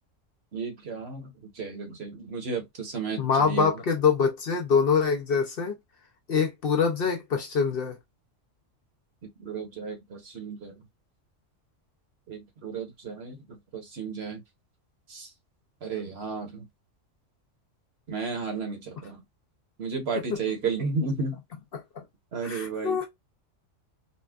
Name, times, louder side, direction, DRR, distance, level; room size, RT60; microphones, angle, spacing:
voice 1, 0.5-3.8 9.4-10.8 12.3-14.4 15.1-15.3 15.8-16.6 18.1-19.2 19.8-21.4 22.3-23.0, right 4 dB, 60° right, 1.2 m, -33 dB
voice 2, 3.2-5.7 6.3-8.0 20.3-20.4 21.7-22.0 22.4-23.1, left 6 dB, 55° left, 0.8 m, -25 dB
4.2 x 2.2 x 2.3 m
omnidirectional pair, 1.3 m